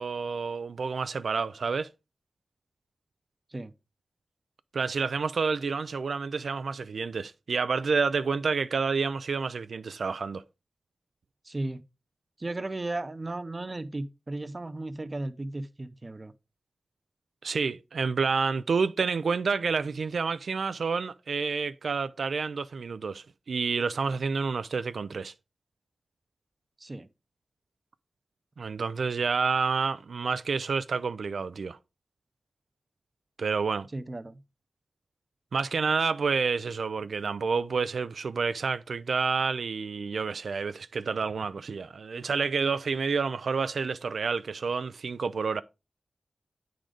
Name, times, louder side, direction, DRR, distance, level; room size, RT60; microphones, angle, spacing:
voice 1, 0.0-1.9 4.7-10.4 17.4-25.3 28.6-31.8 33.4-33.9 35.5-45.6, right 5 dB, 90° right, 0.4 m, -29 dB
voice 2, 11.4-11.8 12.4-16.3 26.8-27.1 33.9-34.4, right 2 dB, 35° right, 0.6 m, -35 dB
8.9 x 3.9 x 5.0 m
wide cardioid pair, 90°, 0 cm